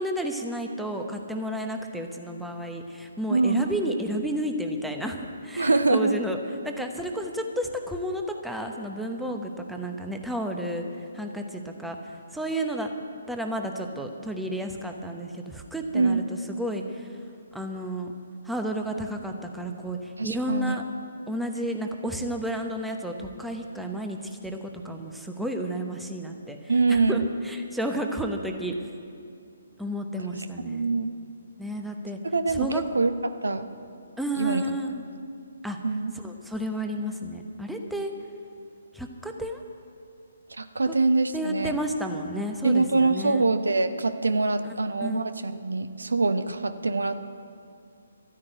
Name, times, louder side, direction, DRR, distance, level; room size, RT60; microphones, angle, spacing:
voice 1, 0.0-6.4 6.6-10.8 11.1-12.9 13.3-17.2 17.5-18.1 18.4-20.8 21.3-24.6 24.8-28.7 29.8-30.9 31.6-32.2 32.5-32.8 34.2-35.0 35.6-35.8 36.1-38.1 38.9-39.6 40.9-41.0 41.3-43.5 45.0-45.2, right 1 dB, ahead, 3 dB, 1.0 m, -32 dB
voice 2, 3.3-3.7 5.6-6.2 15.9-16.2 20.2-20.8 26.7-27.3 30.7-31.2 32.2-33.1 33.4-33.7 34.3-34.7 35.8-36.1 40.5-41.8 42.6-47.2, right 3 dB, 75° right, 11 dB, 0.8 m, -24 dB
13.0 x 9.6 x 9.1 m, 2.4 s
figure-of-eight pair, 135°, 0 cm